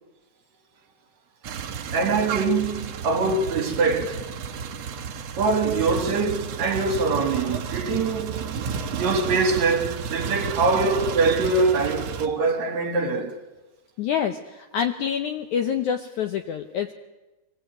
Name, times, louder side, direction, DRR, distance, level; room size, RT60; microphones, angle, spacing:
sound 1, 1.4-12.3, right 6 dB, 65° right, 1.5 m, -32 dB
voice 1, 1.9-4.2 5.4-13.3, right 3 dB, 50° right, 2.9 m, -23 dB
voice 2, 14.0-16.9, left 8 dB, 70° left, 1.8 m, -27 dB
23.5 x 18.0 x 9.1 m
omnidirectional pair, 4.5 m